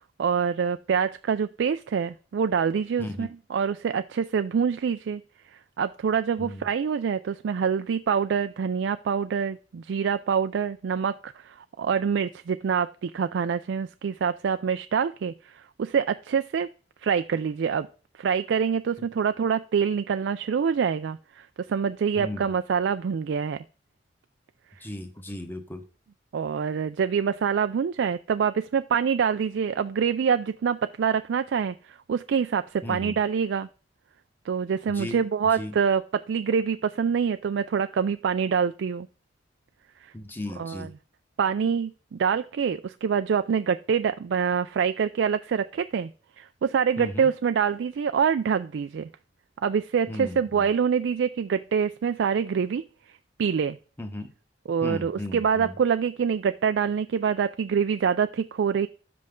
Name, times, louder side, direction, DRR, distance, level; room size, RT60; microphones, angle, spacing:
voice 1, 0.2-5.2 5.5-16.7 17.0-17.9 18.1-23.6 26.3-33.7 34.5-39.1 40.0-40.1 40.6-40.9 41.4-46.1 46.4-49.1 49.6-53.8 54.7-58.9, right 6 dB, 75° right, 10 dB, 0.4 m, -26 dB
voice 2, 24.8-25.8 32.8-33.2 34.9-35.2 35.6-35.8 40.1-40.9 47.0-47.3 50.1-50.7 54.0-54.3 54.8-55.7, left 1 dB, 10° left, 5 dB, 1.2 m, -36 dB
10.5 x 7.6 x 3.7 m, 0.39 s
head